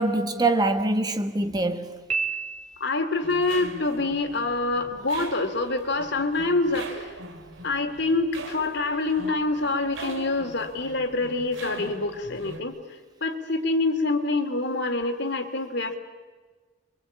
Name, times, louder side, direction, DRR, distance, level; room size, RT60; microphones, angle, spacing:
voice 1, 0.0-2.0, right 2 dB, 20° right, 1.3 m, -24 dB
Piano, 2.1-3.2, right 5 dB, 40° right, 2.7 m, -30 dB
voice 2, 2.8-7.2 7.6-16.0, left 2 dB, 60° left, 2.8 m, -26 dB
sound 1, 3.2-12.6, right 2 dB, 85° right, 2.9 m, -41 dB
28.5 x 23.5 x 8.7 m
head